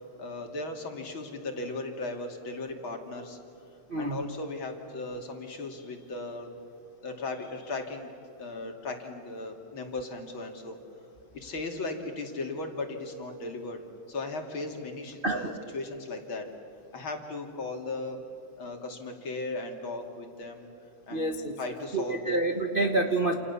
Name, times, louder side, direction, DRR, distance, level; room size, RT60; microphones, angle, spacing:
voice 1, 0.2-3.4 4.0-6.6 7.0-8.1 8.4-10.8 11.3-16.5 16.9-18.2 18.6-20.7 21.1-22.4 22.8-23.0, left 2 dB, 45° left, 3 dB, 3.2 m, -37 dB
voice 2, 3.9-4.2 15.2-15.5 21.1-21.6 21.9-23.3, right 2 dB, 40° right, 3 dB, 0.8 m, -28 dB
29.5 x 29.0 x 7.0 m, 2.7 s
omnidirectional pair, 3.3 m